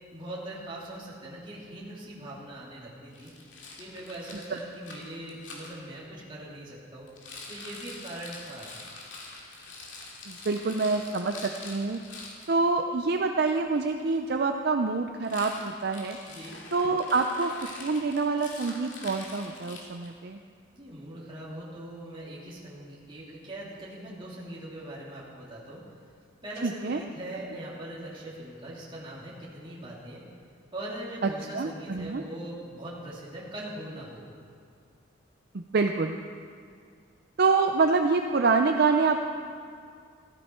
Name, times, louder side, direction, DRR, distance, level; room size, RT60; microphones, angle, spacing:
voice 1, 0.1-3.3 3.8-7.1 7.5-8.8 16.3-16.6 20.7-25.8 26.4-30.2 30.7-34.2, right 1 dB, 25° right, -6 dB, 2.5 m, -41 dB
Rattle, 3.1-5.7 7.1-12.5 15.2-20.2, left 3 dB, 65° left, 2.5 m, -45 dB
voice 2, 10.3-12.0 12.5-16.2 16.7-17.5 17.8-20.4 26.6-27.0 31.2-31.3 31.5-32.2 35.7-36.2 37.4-39.2, right 4 dB, 55° right, 5 dB, 0.5 m, -26 dB
15.0 x 14.0 x 4.4 m, 2.2 s
head